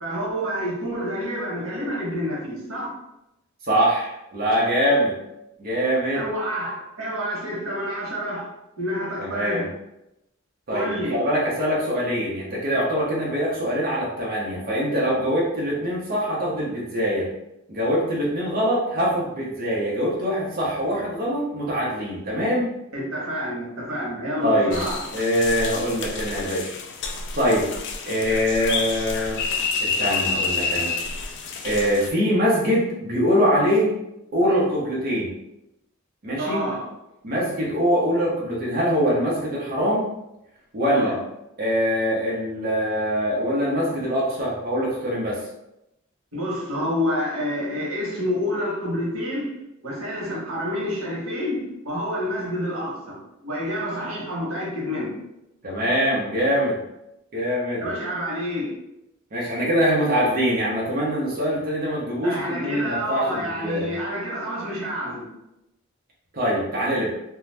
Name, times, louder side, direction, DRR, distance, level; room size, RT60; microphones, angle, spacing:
voice 1, 0.0-2.9 6.1-8.5 8.8-9.7 10.7-11.2 22.9-25.0 36.4-36.9 40.9-41.2 46.3-49.5 49.8-53.2 53.4-55.1 57.8-58.7 62.2-65.3, equal, 90° right, -4 dB, 1.0 m, -28 dB
voice 2, 3.7-5.2 5.6-6.2 9.2-9.7 10.7-17.3 17.7-22.7 24.4-24.8 25.1-26.7 27.3-27.7 28.1-29.4 29.8-30.9 31.6-33.9 34.3-35.3 36.2-36.6 37.2-40.1 40.7-41.1 41.6-45.4 55.6-56.8 57.3-57.9 59.3-63.9 66.3-67.1, equal, 45° right, -5 dB, 0.8 m, -23 dB
sound 1, 24.7-32.1, left 4 dB, 60° left, 0.4 m, -28 dB
2.5 x 2.3 x 3.2 m, 0.87 s
head